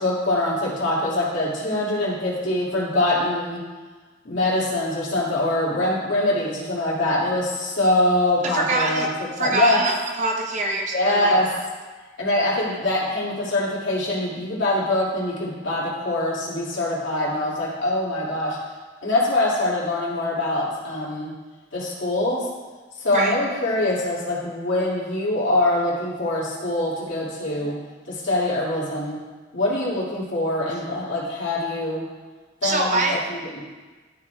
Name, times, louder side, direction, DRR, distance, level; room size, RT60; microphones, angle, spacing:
voice 1, 0.0-3.6 4.2-9.8 10.9-11.5 12.2-18.6 19.0-21.3 21.7-22.4 23.0-27.7 28.1-29.2 29.5-32.0 32.6-33.6, left 1 dB, 75° left, -7 dB, 2.3 m, -24 dB
voice 2, 8.4-9.1 9.4-11.6 23.1-23.4 27.6-27.7 32.6-33.2, right 2 dB, 40° right, 1 dB, 0.7 m, -24 dB
12.0 x 4.8 x 2.3 m, 1.3 s
head